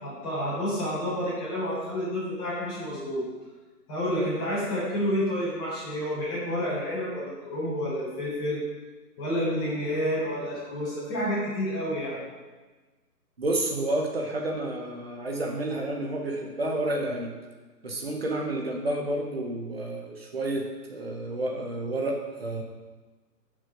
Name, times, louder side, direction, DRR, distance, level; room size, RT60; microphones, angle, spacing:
voice 1, 0.0-3.2 3.9-8.6 9.2-12.2, equal, 15° left, -10 dB, 4.0 m, -29 dB
voice 2, 13.4-17.3 17.8-22.6, right 1 dB, 35° right, 1 dB, 1.3 m, -30 dB
9.7 x 6.6 x 6.1 m, 1.3 s
hypercardioid pair, 180°, 49 cm